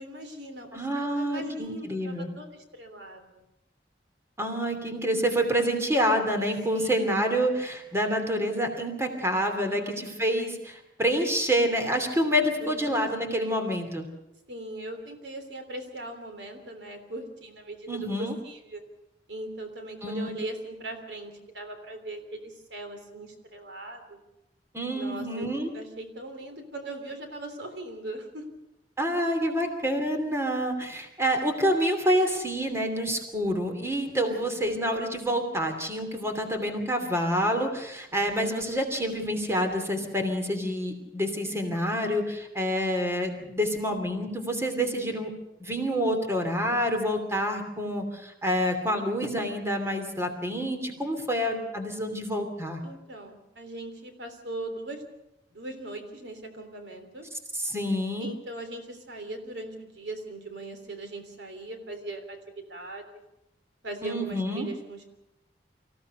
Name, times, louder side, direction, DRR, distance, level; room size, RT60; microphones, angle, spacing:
voice 1, 0.0-3.4 6.7-7.2 9.5-10.2 12.6-13.9 14.5-18.8 19.3-24.2 24.9-25.5 25.7-28.4 34.3-34.6 38.1-38.6 52.8-55.0 55.5-57.2 58.2-62.4 62.7-63.2 63.8-65.1, right 1 dB, 80° right, 6 dB, 3.3 m, -40 dB
voice 2, 0.7-2.3 4.4-14.0 17.9-18.3 20.0-20.3 24.7-25.7 29.0-45.3 45.6-52.8 57.6-58.3 64.0-64.7, equal, 15° right, 5 dB, 2.8 m, -27 dB
25.0 x 16.0 x 6.7 m, 0.90 s
head